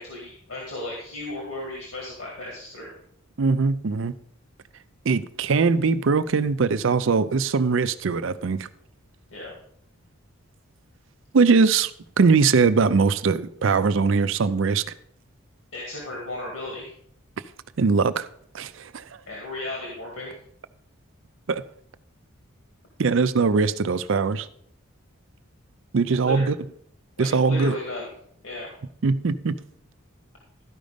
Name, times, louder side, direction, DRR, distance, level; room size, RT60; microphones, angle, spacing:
voice 1, 0.0-2.9 9.3-9.5 15.7-16.9 19.3-20.3 26.1-26.6 27.2-28.1 28.4-28.7, left 1 dB, 75° left, 2.2 m, -35 dB
voice 2, 3.4-4.1 5.1-8.7 11.3-11.9 12.2-14.8 17.8-18.3 18.5-19.0 21.5-21.6 23.0-24.5 25.9-26.6 27.2-27.8 29.0-29.6, right 4 dB, 65° right, 0.5 m, -21 dB
12.5 x 5.2 x 5.1 m
head